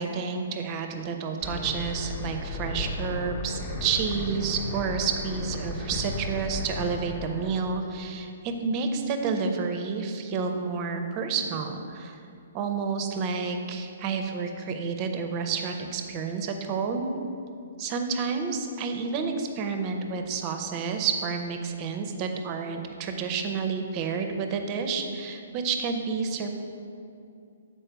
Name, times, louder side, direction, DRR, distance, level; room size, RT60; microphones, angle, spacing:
voice 1, 0.0-8.3 8.6-12.2 12.5-17.1 17.8-26.6, right 5 dB, 25° right, 5 dB, 0.5 m, -30 dB
sound 1, 1.4-7.8, left 2 dB, 30° left, 0.8 m, -34 dB
6.6 x 4.4 x 4.6 m, 2.5 s
hypercardioid pair, 160°, 0 cm